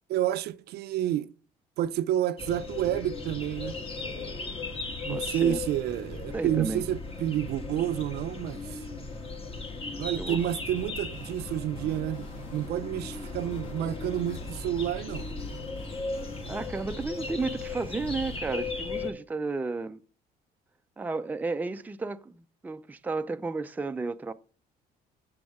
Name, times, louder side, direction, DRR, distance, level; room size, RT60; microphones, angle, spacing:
voice 1, 0.1-1.3 1.8-3.8 5.0-8.8 10.0-15.3, right 12 dB, 75° right, 0.6 m, -29 dB
sound 1, 2.4-19.1, left 3 dB, 35° left, 1.5 m, -37 dB
voice 2, 5.1-5.6 6.3-6.9 10.2-10.4 16.5-20.0 21.0-24.3, right 3 dB, 10° right, 0.4 m, -33 dB
sound 2, 10.4-10.9 11.1-12.9 13.1-18.4, left 2 dB, 50° left, 2.7 m, -46 dB
7.8 x 6.1 x 3.5 m
cardioid pair, 110°, 17 cm